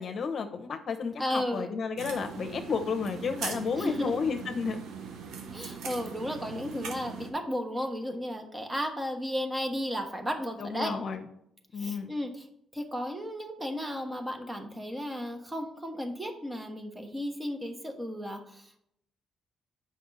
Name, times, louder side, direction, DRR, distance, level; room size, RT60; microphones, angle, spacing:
voice 1, 0.0-4.8 10.6-11.2 11.7-12.1, left 5 dB, 55° left, 6 dB, 0.8 m, -32 dB
voice 2, 1.2-1.7 3.7-4.1 5.5-10.9 11.8-12.4 12.7-18.8, equal, 15° right, 4 dB, 1.3 m, -34 dB
sound 1, 2.0-7.3, right 6 dB, 80° right, 0.9 m, -40 dB
7.7 x 5.4 x 4.0 m, 0.74 s
cardioid pair, 75°, 0 cm